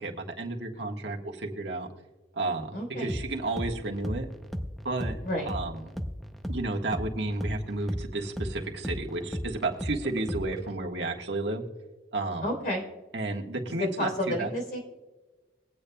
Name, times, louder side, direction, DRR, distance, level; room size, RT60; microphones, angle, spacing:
voice 1, 0.0-1.9 2.3-4.3 4.8-5.2 5.5-5.9 6.5-11.6 12.1-12.4 13.1-14.5, right 2 dB, 80° right, 1 dB, 1.5 m, -32 dB
voice 2, 2.7-3.1 5.2-5.6 12.4-12.8 13.8-14.8, left 1 dB, 55° left, 0 dB, 3.7 m, -30 dB
sound 1, 3.1-10.8, equal, ahead, 0.6 m, -36 dB
22.0 x 8.5 x 2.3 m, 1.2 s
head